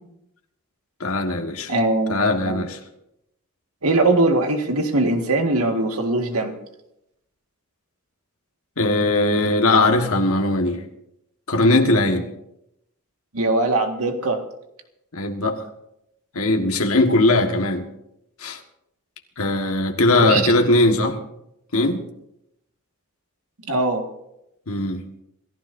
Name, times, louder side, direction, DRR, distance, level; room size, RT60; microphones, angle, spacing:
voice 1, 1.0-1.7 2.1-2.8 8.8-10.8 11.5-12.3 15.1-15.6 16.3-17.9 18.4-18.6 19.4-21.2 21.7-22.0 24.7-25.0, left 2 dB, 70° left, 4 dB, 1.6 m, -19 dB
voice 2, 1.7-2.6 3.8-6.6 13.3-14.4 20.2-20.4 23.7-24.1, right 2 dB, 80° right, 4 dB, 1.9 m, -21 dB
27.5 x 15.0 x 2.7 m, 0.82 s
head